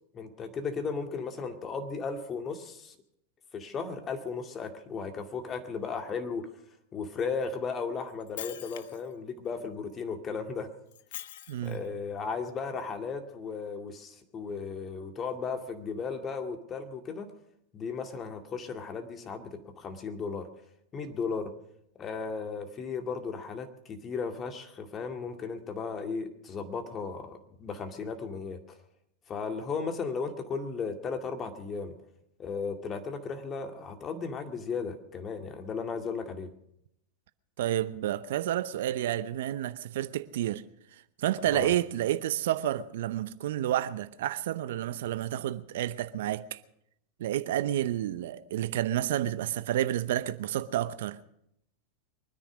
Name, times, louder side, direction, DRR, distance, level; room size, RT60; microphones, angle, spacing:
voice 1, 0.1-2.9 3.5-6.5 6.9-10.7 11.6-17.3 17.7-20.5 20.9-21.5 22.0-28.8 29.3-31.9 32.4-36.5 41.5-41.7, left 5 dB, 30° left, 2.2 m, -35 dB
Shatter, 8.1-9.1 10.9-11.9, left 12 dB, 70° left, 0.8 m, -43 dB
voice 2, 11.5-11.8 37.6-40.6 41.2-46.6 47.2-51.2, right 12 dB, 70° right, 0.7 m, -30 dB
23.5 x 10.0 x 6.2 m
hypercardioid pair, 100°, 0 cm